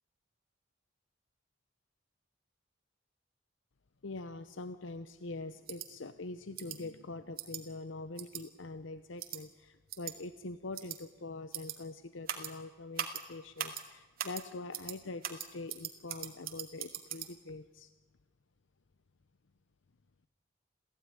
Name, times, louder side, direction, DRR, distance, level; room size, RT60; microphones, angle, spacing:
voice 1, 4.0-17.9, left 2 dB, 75° left, 12 dB, 0.8 m, -44 dB
sound 1, 5.7-5.9 6.6-6.8 7.4-7.6 8.2-8.4 9.2-9.4 9.9-10.1 10.7-11.0 11.5-11.8 12.3-12.5 13.0-13.2 13.6-13.8 14.2-14.4 14.7-15.0 15.2-17.3, right 9 dB, 50° right, 2.4 m, -39 dB
28.5 x 15.5 x 9.8 m, 1.3 s
head